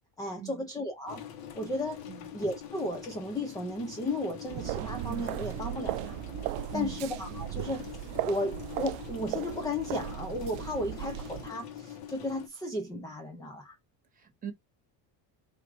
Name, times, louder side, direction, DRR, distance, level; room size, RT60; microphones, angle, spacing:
voice 1, 0.2-1.2 1.5-2.0 2.3-7.8 8.2-13.7, left 1 dB, 10° left, 0.4 m, -34 dB
sound 1, 1.1-12.5, left 9 dB, 50° left, 1.2 m, -45 dB
sound 2, 4.5-11.5, right 17 dB, 85° right, 0.6 m, -37 dB
voice 2, 14.2-14.5, right 8 dB, 20° right, 1.3 m, -40 dB
3.7 x 2.6 x 4.6 m
cardioid pair, 175°, 45 cm